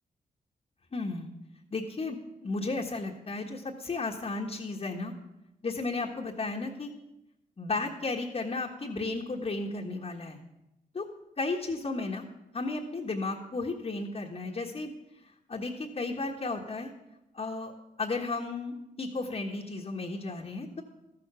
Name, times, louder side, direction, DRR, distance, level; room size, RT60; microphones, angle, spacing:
voice 1, 0.9-1.3 1.7-5.1 5.6-6.9 7.6-10.4 10.9-11.1 11.4-12.2 12.5-14.9 15.5-16.9 17.3-17.7 18.0-20.8, left 3 dB, 40° left, -2 dB, 1.5 m, -34 dB
13.5 x 6.9 x 6.8 m, 0.94 s
cardioid pair, 65°, 16 cm